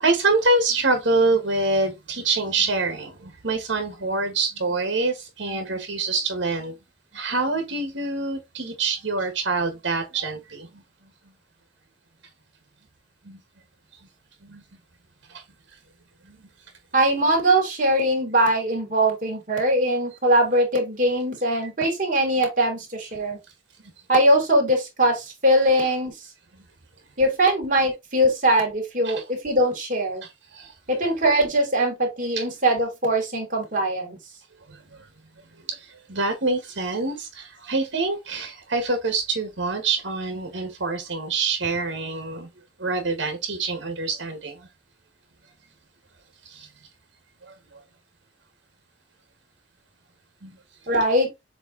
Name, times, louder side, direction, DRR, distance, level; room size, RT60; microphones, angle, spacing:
voice 1, 0.0-6.7 7.1-10.7 13.3-13.4 14.5-14.6 29.0-29.2 30.6-30.7 32.3-32.4 36.1-42.5 42.8-44.5 50.4-50.5, right 3 dB, 90° right, 1.6 m, -25 dB
voice 2, 16.9-23.4 24.1-26.1 27.2-30.2 30.9-34.2 50.9-51.3, right 1 dB, 45° right, 2.8 m, -21 dB
7.2 x 3.2 x 4.0 m
head